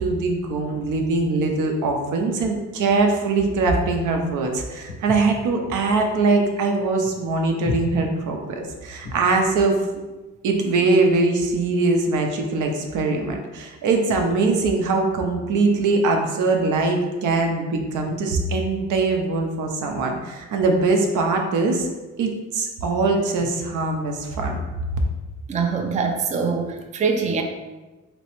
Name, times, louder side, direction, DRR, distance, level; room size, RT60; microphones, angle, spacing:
voice 1, 0.0-9.8 10.4-21.9 22.2-24.6, right 3 dB, 80° right, 3 dB, 0.6 m, -22 dB
Walk footsteps, 4.9-9.4, left 3 dB, 75° left, 0.9 m, -34 dB
voice 2, 25.5-27.4, right 5 dB, 25° right, 4 dB, 0.4 m, -23 dB
3.1 x 3.0 x 3.0 m, 1.2 s
cardioid pair, 90°, 30 cm